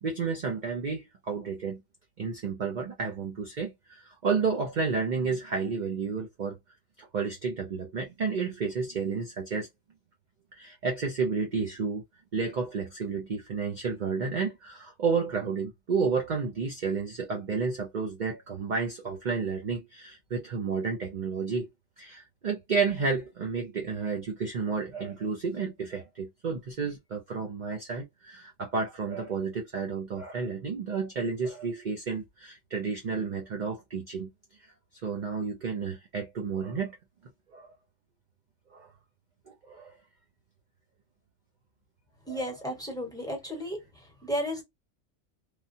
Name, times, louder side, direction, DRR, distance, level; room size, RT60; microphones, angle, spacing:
voice 1, 0.0-1.8 2.2-6.6 7.0-9.7 10.5-12.0 12.3-21.7 22.0-34.3 35.0-37.0 37.5-37.7 38.7-38.9 39.5-39.9 42.3-42.5 43.5-43.6, right 5 dB, 50° right, 0.6 m, -31 dB
voice 2, 42.3-43.8 44.2-44.6, equal, 5° left, 1.1 m, -33 dB
3.3 x 2.2 x 2.6 m
omnidirectional pair, 1.2 m